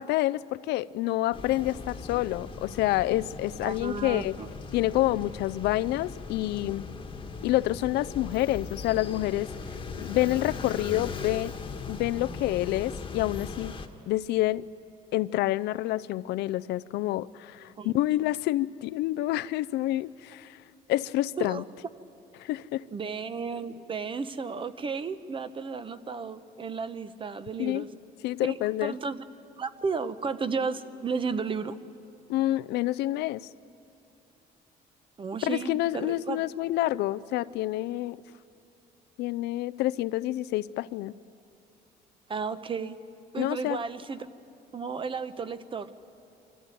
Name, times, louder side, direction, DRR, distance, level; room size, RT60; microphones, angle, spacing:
voice 1, 0.0-4.3 4.7-6.9 7.4-9.5 10.0-11.5 11.9-13.8 14.1-14.7 15.1-20.6 20.9-21.6 22.4-22.8 27.6-27.8 28.2-28.9 32.3-33.5 35.4-38.2 39.2-41.1 43.4-43.8, left 16 dB, 80° left, 17 dB, 0.5 m, -28 dB
sound 1, 1.3-13.9, left 4 dB, 30° left, 1.4 m, -39 dB
voice 2, 3.6-4.5 17.8-17.9 21.4-21.6 22.9-27.9 28.4-29.2 29.6-31.8 35.2-36.4 42.3-43.0 43.3-44.3 44.7-45.9, right 5 dB, 30° right, 12 dB, 0.9 m, -33 dB
24.0 x 14.0 x 9.2 m, 2.8 s
cardioid pair, 110°, 17 cm